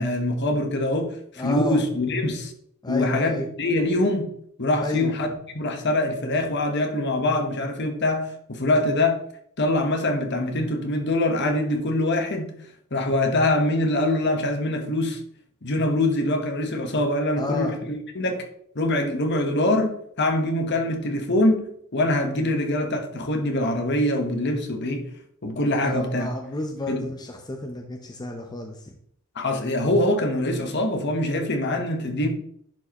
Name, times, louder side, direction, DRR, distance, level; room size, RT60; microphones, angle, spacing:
voice 1, 0.0-2.5 2.9-4.3 4.6-9.2 9.6-12.5 12.9-15.2 15.6-18.4 18.7-21.6 21.9-25.1 25.4-26.3 26.9-27.1 29.3-32.3, left 1 dB, 55° left, 1.2 m, -24 dB
voice 2, 1.4-1.8 2.8-3.5 4.8-5.1 17.4-17.8 25.8-28.9, left 1 dB, 20° left, 0.7 m, -31 dB
10.5 x 4.6 x 3.0 m
head